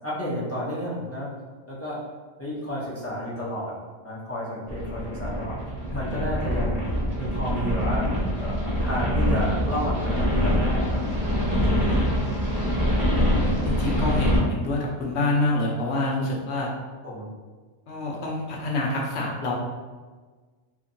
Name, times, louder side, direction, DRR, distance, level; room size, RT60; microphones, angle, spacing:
voice 1, 0.0-1.3 1.7-2.0 2.4-3.7 4.0-5.6 5.9-6.8 7.2-11.0 11.3-11.8 17.0-17.3, equal, 25° left, -7 dB, 0.3 m, -31 dB
sound 1, 4.7-14.4, equal, 20° right, 0.8 m, -24 dB
voice 2, 13.4-16.7 17.9-19.5, left 2 dB, 65° left, -2 dB, 0.8 m, -27 dB
2.9 x 2.6 x 2.6 m, 1.4 s
omnidirectional pair, 1.3 m